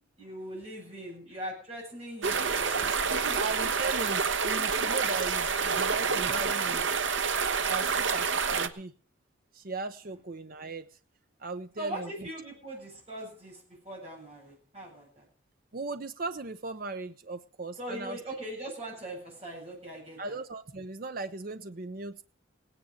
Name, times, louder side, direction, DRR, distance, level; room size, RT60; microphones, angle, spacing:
voice 1, 0.2-3.0 3.2-3.4 7.9-8.1 11.8-15.3 17.8-20.4, right 1 dB, 30° right, -2 dB, 8.0 m, -41 dB
sound 1, 2.2-8.7, right 5 dB, 70° right, 1.0 m, -28 dB
voice 2, 3.3-7.0 7.7-8.9 9.5-10.9 11.4-12.3 15.7-18.2 20.2-22.2, right 3 dB, 45° right, 9 dB, 0.7 m, -37 dB
17.5 x 9.9 x 6.4 m, 0.41 s
head